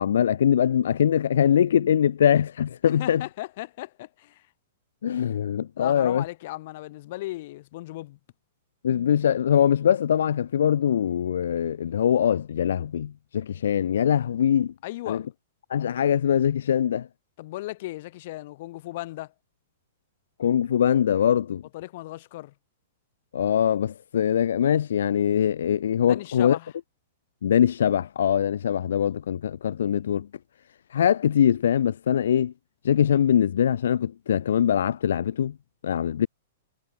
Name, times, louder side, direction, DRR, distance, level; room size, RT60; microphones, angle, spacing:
voice 1, 0.0-3.2 5.0-6.2 8.8-14.7 15.1-15.2 15.7-17.1 20.4-21.6 23.3-26.6 27.4-30.3 30.9-32.5 32.8-35.5 35.8-36.3, left 9 dB, 80° left, 1.8 m, -22 dB
voice 2, 2.8-4.5 5.8-8.2 14.8-15.3 17.4-19.3 21.7-22.5 26.0-26.7, left 17 dB, 50° left, 6.1 m, -36 dB
hypercardioid pair, 150°, 0 cm